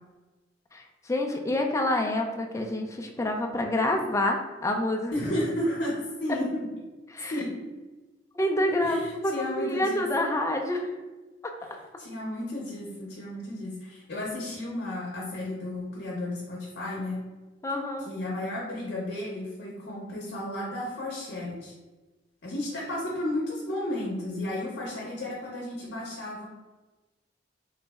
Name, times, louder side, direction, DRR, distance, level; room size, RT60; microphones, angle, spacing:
voice 1, 0.7-5.1 7.1-7.3 8.4-10.9 11.4-11.5 17.6-18.1, left 1 dB, 15° left, 2 dB, 0.4 m, -27 dB
voice 2, 5.1-6.7 7.3-7.6 8.8-10.1 11.6-11.7 12.0-17.2 18.1-21.7 22.4-26.5, left 1 dB, 60° left, -3 dB, 0.7 m, -33 dB
3.9 x 2.0 x 3.4 m, 1.2 s
head